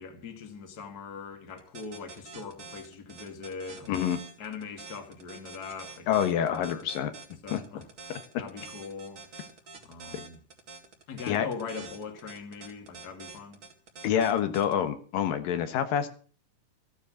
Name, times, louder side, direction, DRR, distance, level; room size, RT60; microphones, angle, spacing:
voice 1, 0.0-4.0 4.4-6.9 7.4-9.2 9.9-10.4 11.1-13.6, left 5 dB, 35° left, 2.1 m, -41 dB
sound 1, 1.6-14.7, right 4 dB, 40° right, 2.6 m, -46 dB
voice 2, 3.9-4.2 6.1-7.1 7.5-7.6 11.3-11.5 14.0-16.1, left 9 dB, 85° left, 3.0 m, -27 dB
15.0 x 9.8 x 6.3 m
omnidirectional pair, 3.9 m